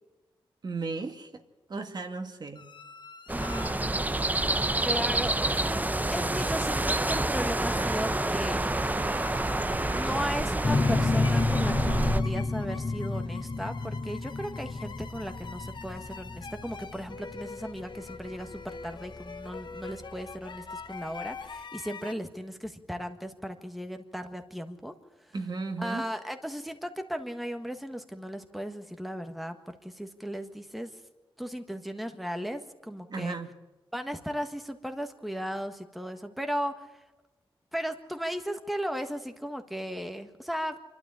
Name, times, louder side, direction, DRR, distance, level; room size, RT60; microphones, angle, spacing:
voice 1, 0.6-1.3 1.7-2.7 25.3-26.0 33.1-33.5, right 3 dB, 50° right, 5 dB, 1.7 m, -35 dB
sound 1, 2.6-22.1, left 5 dB, 55° left, 1.1 m, -46 dB
voice 2, 3.3-3.9 4.8-8.6 9.9-24.9 25.8-30.9 31.4-33.4 33.9-36.9 37.7-40.8, equal, ahead, 6 dB, 1.5 m, -36 dB
sound 2, 3.3-12.2, right 2 dB, 15° right, 0.9 m, -28 dB
sound 3, 10.6-20.0, left 3 dB, 35° left, 0.9 m, -30 dB
26.0 x 12.5 x 8.7 m, 1.1 s
cardioid pair, 75°, 9 cm